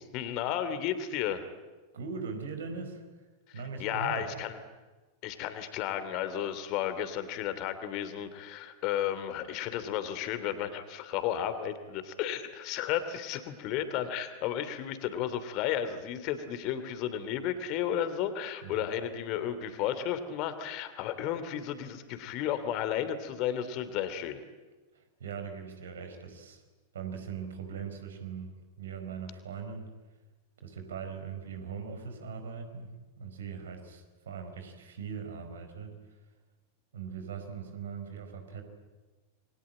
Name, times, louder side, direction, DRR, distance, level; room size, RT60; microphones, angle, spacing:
voice 1, 0.1-1.4 3.5-4.6 5.2-24.4, left 10 dB, 40° left, 11 dB, 2.9 m, -33 dB
voice 2, 1.9-3.0 3.5-4.3 18.6-18.8 24.9-26.6 26.9-29.9 30.6-32.9 33.2-36.0 36.9-38.6, right 6 dB, 65° right, 6 dB, 4.6 m, -40 dB
28.5 x 23.0 x 8.9 m, 1.3 s
figure-of-eight pair, 90°, 0 cm